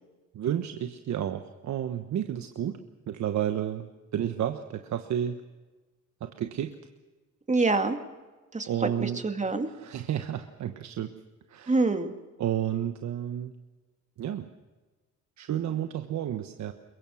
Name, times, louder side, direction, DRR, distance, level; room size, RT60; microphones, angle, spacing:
voice 1, 0.3-2.8 3.1-5.4 6.2-6.8 8.7-9.2 9.7-11.1 11.5-11.8 12.4-13.5 14.2-14.5 15.4-16.7, right 10 dB, 65° right, 7 dB, 1.3 m, -31 dB
voice 2, 7.5-8.0 8.5-9.7 11.7-12.1, right 3 dB, 25° right, 7 dB, 2.2 m, -26 dB
23.0 x 22.5 x 6.4 m, 1.2 s
cardioid pair, 90°, 30 cm